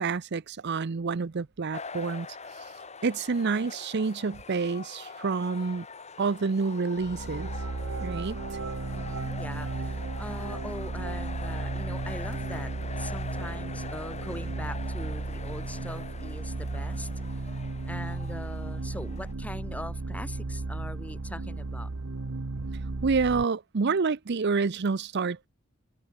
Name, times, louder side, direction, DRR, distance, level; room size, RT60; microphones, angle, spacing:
voice 1, 0.0-2.3 2.6-2.7 3.0-5.9 6.2-7.5 8.0-8.4 23.0-25.5, right 4 dB, 55° right, 0.6 m, -28 dB
sound 1, 1.7-19.3, left 4 dB, 35° left, 3.4 m, -44 dB
sound 2, 7.0-23.4, right 3 dB, 85° right, 1.0 m, -34 dB
voice 2, 8.9-17.1 17.9-21.9, left 1 dB, 5° left, 2.5 m, -41 dB
head